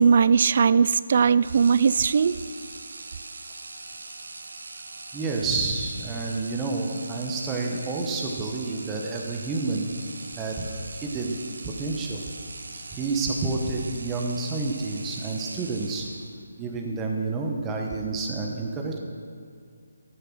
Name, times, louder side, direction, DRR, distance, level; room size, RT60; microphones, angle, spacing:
voice 1, 0.0-2.4, right 6 dB, 40° right, 17 dB, 0.3 m, -19 dB
sound 1, 1.4-16.5, right 3 dB, 75° right, 1.3 m, -41 dB
voice 2, 5.1-9.9 10.4-10.7 11.0-11.4 11.6-12.2 12.9-16.1 16.6-19.0, right 3 dB, 10° right, 0 dB, 1.0 m, -29 dB
13.5 x 9.1 x 6.3 m, 2.3 s
hypercardioid pair, 170°, 0 cm